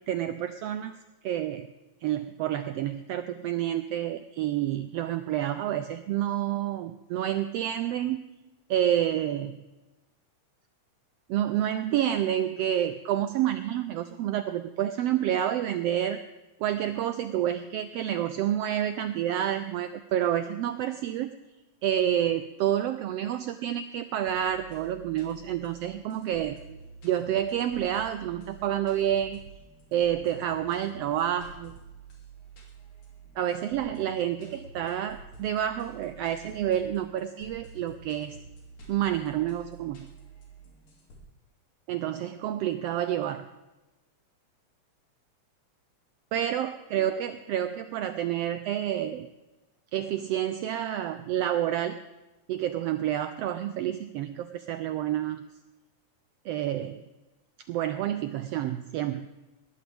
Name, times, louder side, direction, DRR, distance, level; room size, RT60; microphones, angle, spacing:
voice 1, 0.1-0.9 1.2-1.7 2.0-8.2 8.7-9.6 11.3-16.2 16.6-21.4 21.8-26.8 27.0-29.4 29.9-31.7 33.4-38.4 38.9-40.1 41.9-43.5 46.3-49.3 49.9-52.0 52.5-55.5 56.4-57.0 57.7-59.3, right 11 dB, 85° right, 10 dB, 1.4 m, -29 dB
sound 1, 24.3-41.2, right 4 dB, 85° left, 4.1 m, -49 dB
19.0 x 14.0 x 3.5 m, 1.1 s
omnidirectional pair, 3.4 m